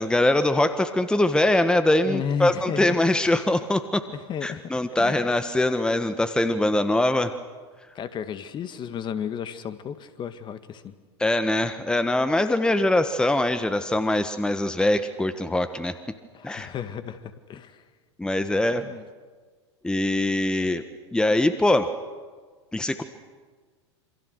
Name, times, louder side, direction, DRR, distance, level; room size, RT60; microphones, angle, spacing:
voice 1, 0.0-4.0 4.4-7.3 11.2-15.9 16.4-16.7 18.2-18.8 19.8-20.8 21.1-21.9 22.7-23.0, left 1 dB, 5° left, 10 dB, 1.4 m, -23 dB
voice 2, 2.1-3.0 4.1-5.2 8.0-11.0 16.3-17.8 18.7-19.0, left 8 dB, 30° left, 11 dB, 1.9 m, -33 dB
27.5 x 26.5 x 6.5 m, 1.5 s
hypercardioid pair, 90°, 15 cm